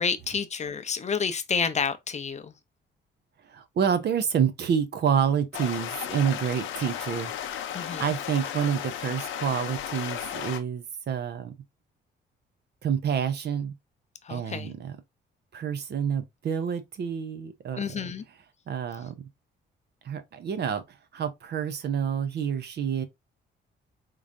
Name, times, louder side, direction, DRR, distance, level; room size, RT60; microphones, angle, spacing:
voice 1, 0.0-2.5 7.7-8.1 14.2-14.7 17.8-18.2, left 6 dB, 35° left, 0.5 m, -29 dB
voice 2, 3.5-7.3 7.7-11.5 12.8-13.7 14.3-14.9 15.5-18.1 18.7-19.3 20.0-23.0, right 7 dB, 55° right, 0.7 m, -28 dB
sound 1, 5.5-10.6, left 10 dB, 85° left, 0.7 m, -34 dB
3.7 x 3.1 x 2.6 m
cardioid pair, 90°, 20 cm